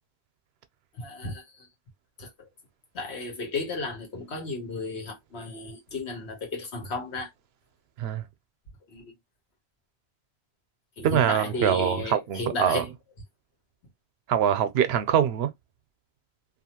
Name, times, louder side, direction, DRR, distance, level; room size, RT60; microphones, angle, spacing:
voice 1, 0.9-1.7 2.2-2.3 2.9-7.3 8.9-9.1 11.0-12.9, left 3 dB, 85° left, 1.3 m, -34 dB
voice 2, 11.0-12.8 14.3-15.5, right 9 dB, 75° right, 0.8 m, -24 dB
2.7 x 2.3 x 2.8 m
omnidirectional pair, 1.1 m